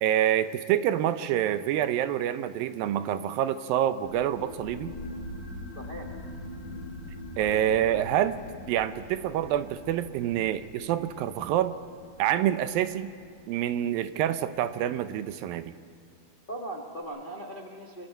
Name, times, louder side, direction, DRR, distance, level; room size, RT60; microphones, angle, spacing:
voice 1, 0.0-4.9 7.4-8.4 8.7-11.7 12.2-13.1 13.5-15.7, right 11 dB, 80° right, 11 dB, 2.4 m, -27 dB
sound 1, 4.0-15.2, left 1 dB, 25° left, 3.8 m, -43 dB
voice 2, 5.7-6.1 7.4-7.6 7.9-8.0 16.5-18.1, right 1 dB, 70° left, 0 dB, 0.5 m, -39 dB
29.5 x 23.5 x 4.6 m, 2.4 s
omnidirectional pair, 4.3 m